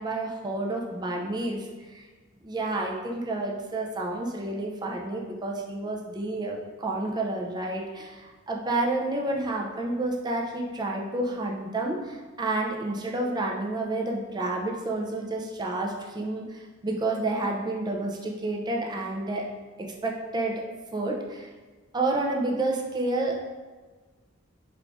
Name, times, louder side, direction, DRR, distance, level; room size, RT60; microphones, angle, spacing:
voice 1, 0.0-1.6 1.9-2.0 2.4-8.2 8.5-16.4 16.8-19.5 20.0-20.5 20.9-21.5 21.9-23.5, right 2 dB, 20° right, -1 dB, 0.5 m, -29 dB
4.6 x 3.5 x 2.5 m, 1.3 s
head